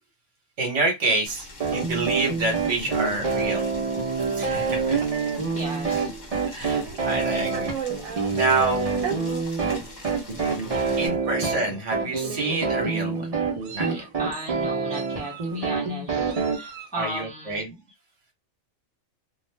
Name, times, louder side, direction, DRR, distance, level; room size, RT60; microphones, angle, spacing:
voice 1, 0.6-1.5 1.7-3.6 4.3-5.0 6.5-7.7 8.3-8.9 11.0-13.3 13.7-14.0 16.9-17.7, right 2 dB, 65° right, 1.2 m, -27 dB
Boiling, 1.3-11.1, left 2 dB, 35° left, 0.9 m, -43 dB
sound 1, 1.6-16.6, right 4 dB, 35° right, 0.7 m, -26 dB
voice 2, 5.5-6.1 10.3-10.5 10.7-10.9 11.3-11.4 13.8-17.8, right 1 dB, 5° left, 0.8 m, -36 dB
Meow, 6.7-8.3 9.0-9.2 10.0-10.1 10.5-10.7 11.7-11.9 12.2-12.8 13.4-14.1 14.9-15.6 16.3-17.0, right 8 dB, 85° right, 1.0 m, -36 dB
2.4 x 2.3 x 3.2 m
omnidirectional pair, 1.4 m